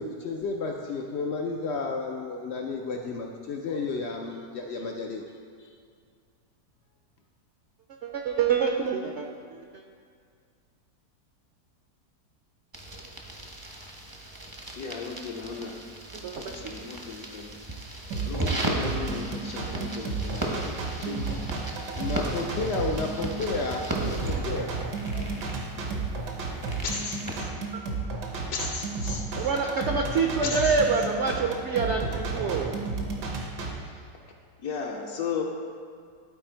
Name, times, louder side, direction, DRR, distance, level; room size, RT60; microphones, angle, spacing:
voice 1, 0.0-5.2 5.6-5.7 22.0-24.8 25.1-25.8, left 3 dB, 85° left, 1 dB, 0.5 m, -32 dB
voice 2, 8.0-9.6 16.1-16.8 19.7-20.1 21.1-21.2 27.7-27.8 29.4-32.8, right 5 dB, 65° right, 2 dB, 0.7 m, -27 dB
sound 1, 12.7-27.4, right 2 dB, 25° right, 0.5 m, -36 dB
voice 3, 14.8-15.8 16.2-17.5 18.3-21.3 33.8-34.0 34.6-35.4, left 5 dB, 70° left, -1 dB, 1.2 m, -36 dB
sound 2, 18.1-33.7, right 4 dB, 80° right, 1.5 m, -33 dB
sound 3, 26.8-27.5 28.5-29.5 30.4-31.1, left 4 dB, 55° left, 0.8 m, -34 dB
12.0 x 4.2 x 4.4 m, 2.1 s
omnidirectional pair, 1.8 m